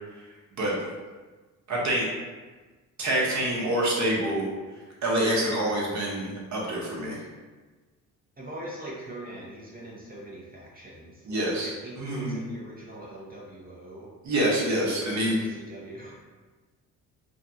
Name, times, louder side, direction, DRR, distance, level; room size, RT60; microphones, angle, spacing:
voice 1, 1.7-2.1 3.0-4.5 5.0-7.2 11.3-11.7 12.0-12.4 14.2-15.4, right 1 dB, 45° right, -4 dB, 0.9 m, -26 dB
voice 2, 8.4-14.1 14.8-16.1, right 1 dB, 25° right, -5 dB, 0.6 m, -42 dB
2.6 x 2.1 x 2.6 m, 1.3 s
hypercardioid pair, 50°, 40 cm